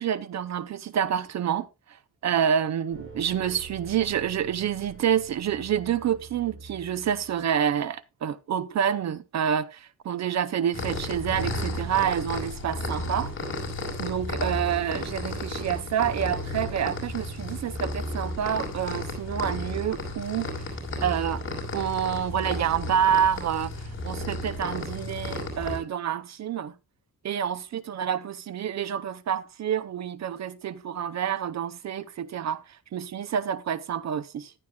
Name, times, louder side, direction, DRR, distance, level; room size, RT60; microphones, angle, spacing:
voice 1, 0.0-1.7 2.2-13.3 14.0-20.7 21.0-21.4 21.7-26.7 27.2-34.5, right 9 dB, 55° right, 0.6 m, -28 dB
sound 1, 2.9-7.8, right 4 dB, 35° right, 5.6 m, -46 dB
sound 2, 10.7-25.8, left 1 dB, 35° left, 4.9 m, -33 dB
14.5 x 11.0 x 2.3 m
wide cardioid pair, 155°, 33 cm